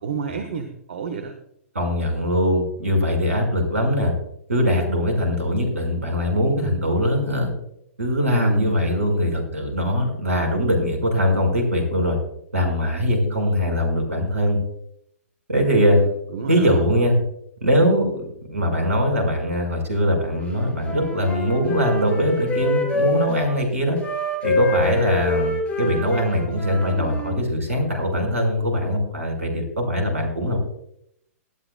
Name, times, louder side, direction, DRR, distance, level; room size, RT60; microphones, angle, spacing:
voice 1, 0.0-1.3 8.3-8.7 15.8-16.8, right 5 dB, 55° right, 7 dB, 1.3 m, -30 dB
voice 2, 1.7-4.1 4.5-7.5 8.0-12.2 12.5-14.6 15.5-16.0 16.5-17.2 17.6-24.0 24.4-30.6, equal, 75° right, 3 dB, 5.3 m, -21 dB
Wind instrument woodwind instrument, 20.6-23.5 24.0-27.4, left 1 dB, 15° left, 3.5 m, -26 dB
19.0 x 12.5 x 2.3 m, 0.71 s
figure-of-eight pair, 110°, 8 cm